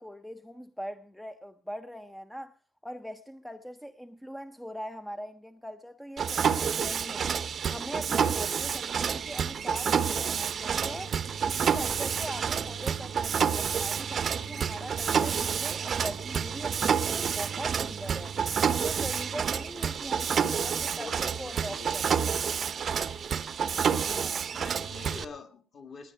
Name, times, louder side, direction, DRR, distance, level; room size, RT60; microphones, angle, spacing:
voice 1, 0.0-2.6 2.8-7.3 7.7-11.2 11.4-22.2 24.0-24.4, equal, ahead, 0.5 m, -41 dB
Mechanisms, 6.2-25.2, right 7 dB, 40° right, 0.7 m, -29 dB
voice 2, 20.5-22.4 23.9-24.2 24.5-26.1, left 4 dB, 40° left, 1.6 m, -47 dB
18.0 x 9.8 x 4.6 m
cardioid pair, 120°, 0 cm